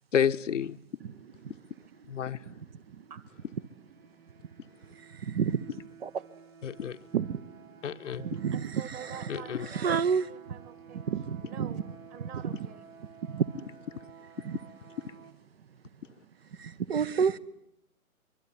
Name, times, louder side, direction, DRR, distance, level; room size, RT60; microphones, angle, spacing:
voice 1, 0.1-0.8 2.1-2.4 6.6-7.0 7.8-8.2 9.3-9.6, left 8 dB, 55° left, 1.0 m, -29 dB
sound 1, 3.3-15.3, right 6 dB, 70° right, 4.1 m, -53 dB
voice 2, 5.1-5.6 6.0-6.1 7.1-7.4 8.2-9.2 9.7-10.3 11.1-11.8 12.4-12.5 13.3-13.5 14.4-14.6 16.6-17.4, right 7 dB, 45° right, 1.1 m, -30 dB
voice 3, 8.2-11.0 11.4-11.8 12.1-12.9, right 8 dB, 15° right, 1.7 m, -47 dB
24.5 x 23.5 x 9.6 m
figure-of-eight pair, 135°, 43 cm